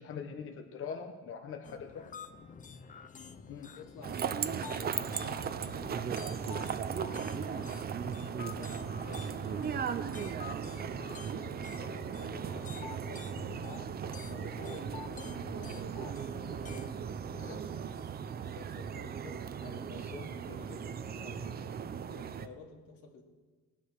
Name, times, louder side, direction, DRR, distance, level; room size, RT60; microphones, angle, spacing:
voice 1, 0.0-2.1 3.5-3.7 17.5-17.6 19.9-20.6, left 6 dB, 40° left, 5 dB, 1.1 m, -43 dB
sound 1, 1.6-17.0, left 6 dB, 25° left, 0.7 m, -48 dB
voice 2, 3.7-6.8 7.3-7.7 8.2-13.8 14.3-16.7 17.3-23.2, left 4 dB, 85° left, 1 dB, 2.7 m, -52 dB
sound 2, 4.0-22.5, right 7 dB, 30° right, 0.6 m, -37 dB
18.5 x 9.9 x 6.5 m, 1.3 s
cardioid pair, 155°, 31 cm